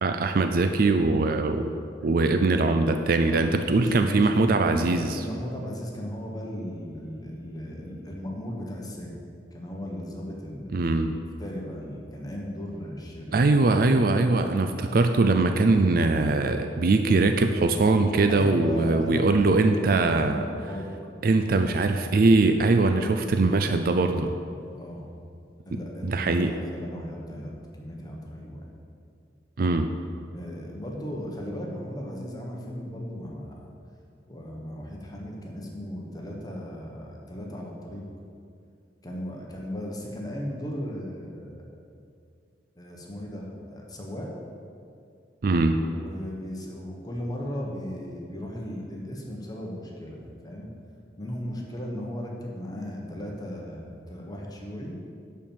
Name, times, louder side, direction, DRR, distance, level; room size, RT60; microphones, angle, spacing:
voice 1, 0.0-1.7 2.0-5.2 10.7-11.2 13.3-20.4 21.2-24.3 26.0-26.5 29.6-29.9 45.4-45.8, right 3 dB, 55° right, 7 dB, 0.4 m, -22 dB
voice 2, 3.3-4.7 5.1-9.2 9.5-11.0 11.4-13.5 18.3-20.9 24.7-25.0 25.6-28.7 30.3-33.7 34.3-38.0 39.0-41.8 42.8-44.3 45.9-50.7 51.2-54.9, equal, 20° left, -1 dB, 1.3 m, -36 dB
11.0 x 4.5 x 7.3 m, 2.4 s
head